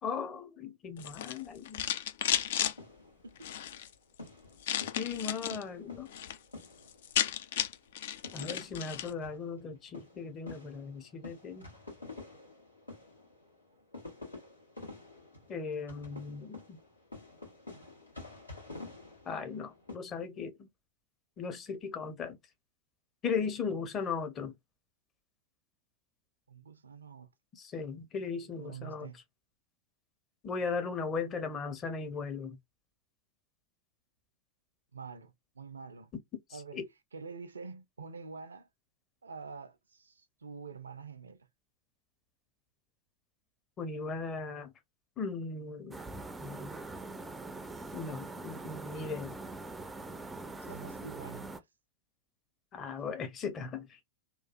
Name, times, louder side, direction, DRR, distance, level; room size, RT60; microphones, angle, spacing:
voice 1, 0.0-1.9 5.0-6.1 8.3-11.7 15.5-16.8 19.3-20.7 21.4-22.4 23.2-24.5 27.5-29.1 30.4-32.6 36.5-36.8 43.8-44.7 45.2-46.0 46.4-46.8 47.9-49.4 52.7-54.0, left 5 dB, 25° left, 0.8 m, -37 dB
sound 1, 1.0-2.7 3.4-3.9 4.6-5.6 6.0-6.4 6.6-6.7 6.9-9.1, left 10 dB, 55° left, 0.4 m, -33 dB
sound 2, 2.8-3.8 4.2-7.3 7.6-7.8 8.1-20.0, left 3 dB, 80° left, 1.5 m, -49 dB
voice 2, 26.5-27.3 28.6-29.2 34.9-36.1 36.5-36.8 37.1-38.7 39.2-41.5 50.7-51.5, right 5 dB, 75° right, 0.5 m, -46 dB
sound 3, 45.9-51.6, right 2 dB, 10° right, 0.4 m, -43 dB
3.0 x 2.3 x 2.5 m
figure-of-eight pair, 90°, 0 cm